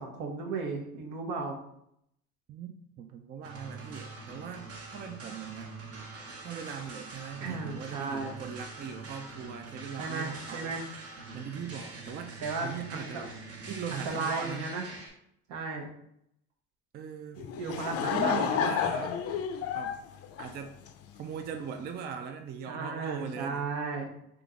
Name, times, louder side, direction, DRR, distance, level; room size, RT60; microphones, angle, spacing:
voice 1, 0.0-1.6 7.4-8.3 10.0-10.8 12.4-13.2 13.9-14.9 15.5-15.9 17.4-18.8 22.7-24.1, right 4 dB, 70° right, 2 dB, 1.0 m, -35 dB
voice 2, 2.5-5.7 6.4-10.8 11.3-12.4 12.6-13.3 13.7-14.7 16.9-17.4 18.0-19.2 19.7-20.0 20.4-20.8 21.2-23.7, right 7 dB, 35° right, 6 dB, 0.4 m, -40 dB
sound 1, 3.4-15.1, right 3 dB, 50° right, 1.1 m, -44 dB
Laughter / Crowd, 17.4-21.2, left 8 dB, 50° left, 0.5 m, -31 dB
3.6 x 2.9 x 3.6 m, 0.76 s
cardioid pair, 105°, 31 cm